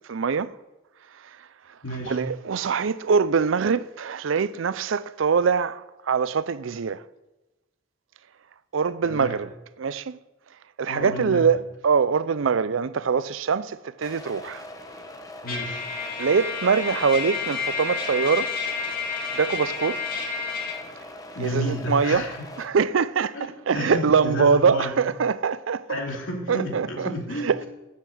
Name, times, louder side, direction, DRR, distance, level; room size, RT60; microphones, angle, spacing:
voice 1, 0.1-0.6 1.2-1.4 2.0-7.0 8.7-9.5 9.8-10.2 10.8-14.6 16.2-18.5 19.3-20.0 21.4-22.3 22.6-25.9 26.5-27.6, right 5 dB, 85° right, 0.5 m, -23 dB
voice 2, 1.8-2.2 9.0-9.4 10.9-11.4 15.4-15.9 21.3-22.4 23.3-24.9 25.9-27.7, equal, 80° left, 2.7 m, -31 dB
sound 1, 14.0-22.6, left 1 dB, 20° left, 1.0 m, -42 dB
Trumpet, 15.5-20.8, left 5 dB, 45° left, 2.3 m, -30 dB
11.0 x 7.4 x 7.7 m
head